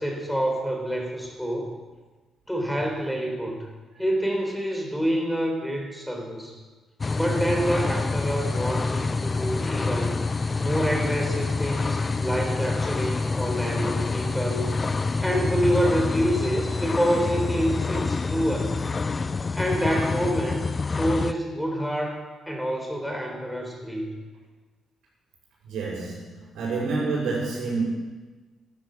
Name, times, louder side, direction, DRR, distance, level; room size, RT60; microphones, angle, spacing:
voice 1, 0.0-1.7 2.5-3.7 4.0-6.6 7.1-10.2 10.6-14.7 15.2-18.8 19.6-24.2, equal, ahead, 1 dB, 4.0 m, -27 dB
sound 1, 7.0-21.3, left 4 dB, 30° left, 0.5 m, -27 dB
voice 2, 25.6-27.8, right 3 dB, 85° right, -7 dB, 6.3 m, -28 dB
12.5 x 12.5 x 7.7 m, 1.3 s
cardioid pair, 90°, 0 cm